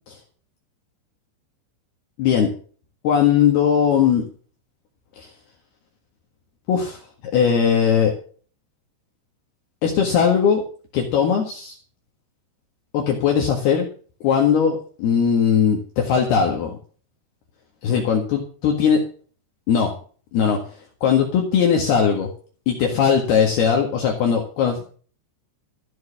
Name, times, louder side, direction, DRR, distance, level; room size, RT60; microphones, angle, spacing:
voice 1, 2.2-2.5 3.0-4.2 5.2-5.3 6.7-7.0 7.3-8.1 9.8-10.6 10.9-11.8 12.9-13.9 14.2-16.8 17.8-19.0 19.7-19.9 20.3-20.6 21.0-22.3 22.7-24.8, left 7 dB, 65° left, 1 dB, 3.5 m, -19 dB
14.5 x 7.7 x 7.3 m, 0.43 s
omnidirectional pair, 5.3 m